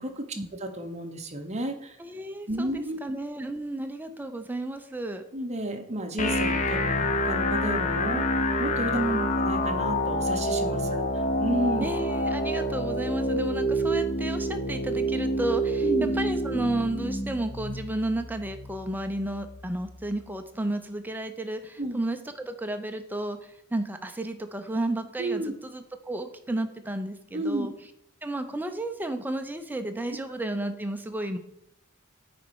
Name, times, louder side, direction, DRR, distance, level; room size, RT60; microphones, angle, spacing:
voice 1, 0.6-2.0 2.5-3.0 5.3-8.3 8.6-9.0 9.4-11.9 13.4-13.5 15.8-16.1 21.8-22.0 25.2-25.5 27.3-27.7, right 1 dB, 30° right, 5 dB, 0.9 m, -32 dB
voice 2, 2.0-5.2 8.9-9.3 10.8-11.1 11.8-15.9 16.1-27.7 28.2-31.4, right 1 dB, 10° right, 7 dB, 0.6 m, -32 dB
sound 1, 6.2-20.2, equal, 35° left, 0.7 m, -28 dB
9.2 x 4.2 x 4.7 m, 0.75 s
head